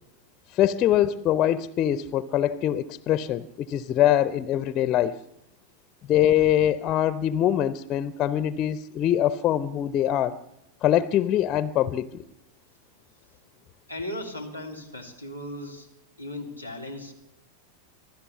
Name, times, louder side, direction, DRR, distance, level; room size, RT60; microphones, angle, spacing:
voice 1, 0.5-5.1 6.1-10.4 10.8-12.2, left 11 dB, 30° left, 16 dB, 0.7 m, -23 dB
voice 2, 13.9-15.9 16.2-17.1, left 1 dB, 90° right, 5 dB, 3.2 m, -37 dB
26.0 x 16.0 x 7.1 m, 0.87 s
figure-of-eight pair, 90°, 0 cm